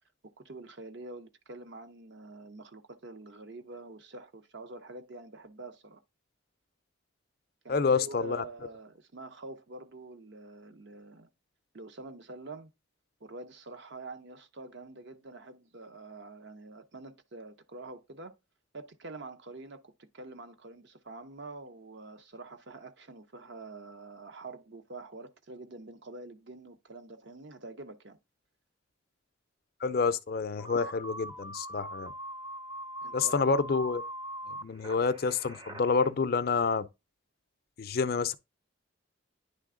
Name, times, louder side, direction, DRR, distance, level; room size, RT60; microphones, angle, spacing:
voice 1, 0.4-6.0 7.6-11.3 11.7-12.7 13.2-18.3 18.7-28.2 33.0-33.5, right 2 dB, 55° right, 0.7 m, -46 dB
voice 2, 7.7-8.4 29.8-32.1 33.1-34.0 34.5-36.9 37.8-38.3, left 4 dB, 50° left, 0.4 m, -28 dB
sound 1, 30.6-36.1, right 1 dB, 20° right, 0.6 m, -42 dB
9.8 x 3.3 x 3.7 m
head